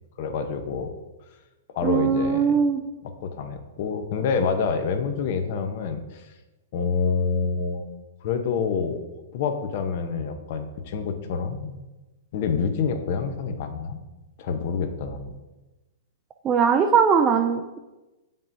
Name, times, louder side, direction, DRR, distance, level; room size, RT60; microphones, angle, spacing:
voice 1, 0.2-0.9 1.7-2.6 3.0-6.2 6.7-7.9 8.2-9.0 9.3-11.8 12.3-14.0 14.4-15.3, left 5 dB, 50° left, 8 dB, 0.7 m, -27 dB
voice 2, 1.8-2.8 16.4-17.8, right 6 dB, 25° right, 4 dB, 0.4 m, -20 dB
7.2 x 5.4 x 2.7 m, 1.1 s
hypercardioid pair, 135°, 0 cm